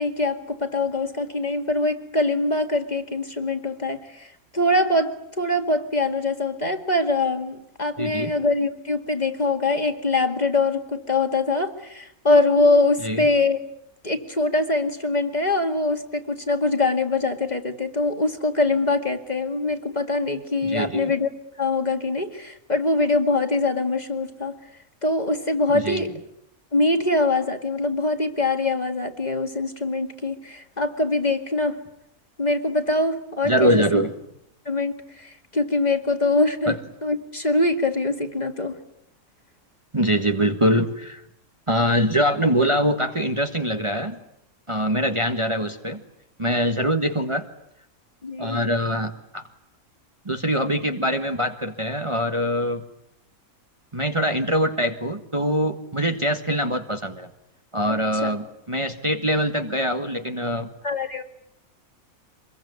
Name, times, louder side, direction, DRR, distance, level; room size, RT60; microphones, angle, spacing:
voice 1, 0.0-13.6 14.0-21.3 21.6-24.6 25.0-26.1 26.7-31.8 32.4-34.0 34.7-38.8 48.2-48.6 57.9-58.0 58.2-58.3 60.8-61.2, left 2 dB, 30° left, 6 dB, 2.2 m, -23 dB
voice 2, 8.0-8.3 13.0-13.2 20.6-21.1 25.7-26.1 33.4-34.1 36.7-36.8 39.9-41.2 41.7-44.2 44.7-46.0 46.4-47.4 48.4-49.5 50.2-52.8 53.9-57.3 57.7-60.7, equal, 20° right, 5 dB, 1.6 m, -23 dB
26.0 x 22.0 x 9.5 m, 0.77 s
omnidirectional pair, 1.5 m